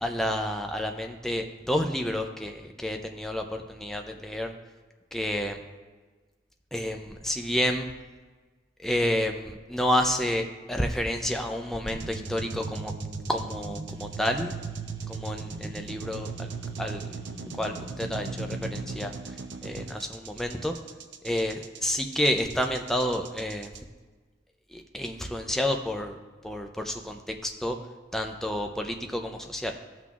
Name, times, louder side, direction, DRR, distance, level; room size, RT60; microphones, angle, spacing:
voice 1, 0.0-4.5 5.1-5.6 6.7-7.9 8.8-12.9 13.3-14.5 15.1-16.5 16.8-17.1 17.6-19.1 19.6-20.7 21.2-23.7 24.7-26.2 26.4-27.8 28.1-29.7, left 1 dB, ahead, 4 dB, 0.4 m, -30 dB
sound 1, 11.9-23.8, right 4 dB, 80° right, 0.6 m, -37 dB
15.0 x 6.0 x 2.4 m, 1.3 s
head